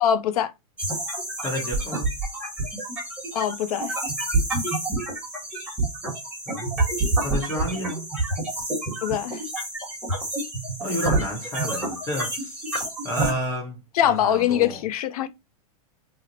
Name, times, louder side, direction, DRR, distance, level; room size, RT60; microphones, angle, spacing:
voice 1, 0.0-0.5 3.3-4.0 9.0-9.4 13.9-15.3, left 10 dB, 70° left, 0.6 m, -23 dB
sound 1, 0.8-13.3, right 2 dB, 5° right, 1.2 m, -28 dB
voice 2, 1.4-2.2 6.5-6.8 7.2-8.1 10.8-12.6 13.0-14.8, equal, 15° left, 0.8 m, -30 dB
2.9 x 2.0 x 3.9 m
supercardioid pair, 155°, 20 cm